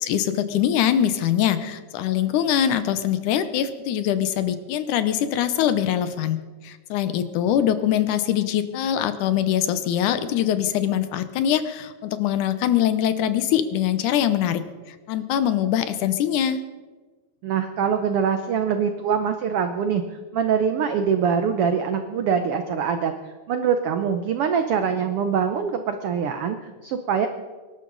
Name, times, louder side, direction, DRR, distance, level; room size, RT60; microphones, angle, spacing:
voice 1, 0.0-6.4 6.6-14.6 15.1-16.6, left 10 dB, 80° left, 11 dB, 2.3 m, -23 dB
voice 2, 17.4-23.1 23.5-27.3, right 7 dB, 80° right, 7 dB, 1.3 m, -24 dB
24.0 x 12.0 x 4.0 m, 1.3 s
omnidirectional pair, 3.6 m